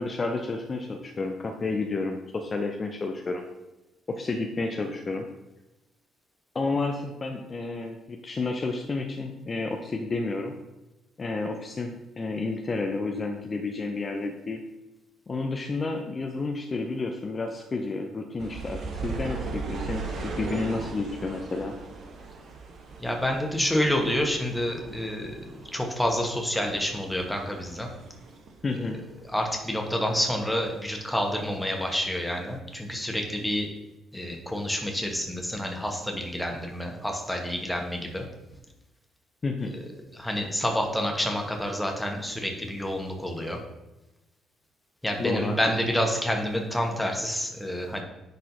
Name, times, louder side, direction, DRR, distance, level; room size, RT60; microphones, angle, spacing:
voice 1, 0.0-3.4 4.1-5.3 6.5-10.5 11.2-14.6 15.3-21.7 28.6-29.0 39.4-39.7 45.2-45.6, left 3 dB, 35° left, 4 dB, 0.6 m, -31 dB
sound 1, 18.4-29.6 29.8-30.9 31.4-31.5, right 4 dB, 50° right, 0.9 m, -39 dB
voice 2, 23.0-27.9 28.7-28.9 29.2-33.7 34.1-38.3 39.7-43.6 45.0-48.0, equal, 5° left, 2 dB, 1.4 m, -28 dB
10.0 x 4.1 x 2.8 m, 0.99 s
figure-of-eight pair, 45°, 0 cm